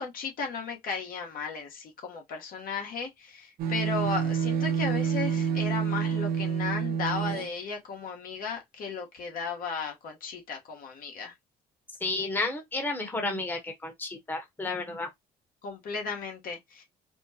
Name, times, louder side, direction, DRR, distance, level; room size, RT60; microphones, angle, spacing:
voice 1, 0.0-11.3 15.6-16.8, left 5 dB, 60° left, 1.2 m, -35 dB
sound 1, 3.6-7.5, right 7 dB, 65° right, 0.9 m, -28 dB
voice 2, 12.0-15.1, left 2 dB, 10° left, 1.0 m, -32 dB
4.3 x 2.1 x 2.8 m
cardioid pair, 110°, 17 cm